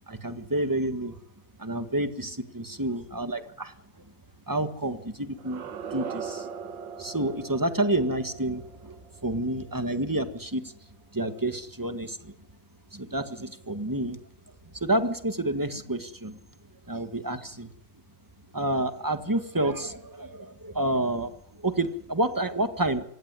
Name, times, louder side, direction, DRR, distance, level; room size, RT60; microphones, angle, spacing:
voice 1, 0.1-1.2 1.6-4.1 4.5-5.6 5.9-6.5 7.0-10.7 11.1-12.3 12.9-14.2 14.7-16.4 16.9-17.7 18.5-23.0, right 1 dB, 10° right, 9 dB, 1.6 m, -29 dB
sound 1, 5.3-10.3, right 6 dB, 90° right, 2.1 m, -40 dB
26.0 x 17.0 x 9.7 m, 0.74 s
omnidirectional pair, 1.9 m